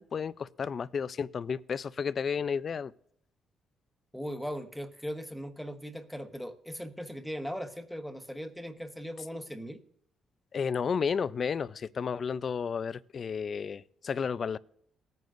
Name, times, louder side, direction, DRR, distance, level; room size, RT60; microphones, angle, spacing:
voice 1, 0.0-2.9 10.5-14.6, left 6 dB, 45° left, 0.4 m, -32 dB
voice 2, 4.1-9.8, equal, ahead, 1.2 m, -39 dB
19.0 x 9.3 x 2.6 m
cardioid pair, 90°, 0 cm